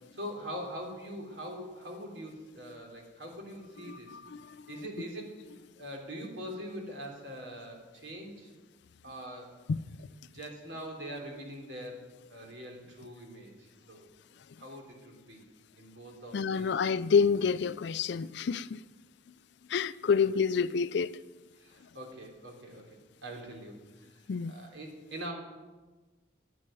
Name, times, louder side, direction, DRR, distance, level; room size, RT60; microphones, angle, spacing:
voice 1, 0.0-4.2 4.7-5.4 5.7-8.5 9.0-9.5 10.2-12.0 12.3-14.1 14.6-15.4 15.8-16.7 21.6-25.3, equal, 65° right, 3.2 m, -43 dB
voice 2, 3.9-4.7 9.7-10.0 16.3-18.8 19.7-21.2 24.3-24.5, left 6 dB, 60° left, 0.4 m, -28 dB
10.5 x 9.3 x 9.1 m
head